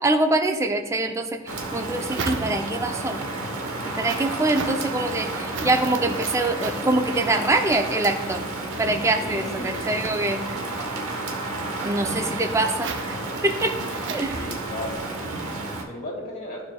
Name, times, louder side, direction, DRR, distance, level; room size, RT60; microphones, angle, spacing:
voice 1, 0.0-1.4 1.7-3.3 4.0-8.4 8.8-10.4 11.8-12.9 13.4-13.7 14.1-14.5, right 2 dB, 15° right, 7 dB, 0.4 m, -24 dB
sound 1, 1.5-2.9 3.4-15.0, right 4 dB, 60° right, 0.6 m, -38 dB
Rain, 1.5-15.8, right 2 dB, 85° right, 0.9 m, -31 dB
voice 2, 9.2-9.8 14.3-15.1 15.9-16.6, left 1 dB, 40° left, -3 dB, 2.1 m, -35 dB
13.5 x 4.7 x 2.2 m, 1.4 s
head